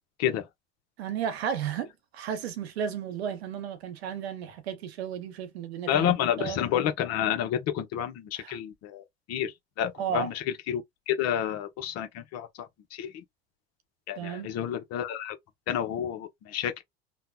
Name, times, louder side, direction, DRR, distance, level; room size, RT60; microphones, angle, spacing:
voice 1, 1.0-6.6 8.4-8.6 10.0-10.3 14.2-14.5, right 8 dB, 90° right, 0.8 m, -33 dB
voice 2, 5.9-13.2 14.1-15.4 15.7-16.8, left 10 dB, 55° left, 0.9 m, -30 dB
2.8 x 2.1 x 2.3 m
hypercardioid pair, 85°, 31 cm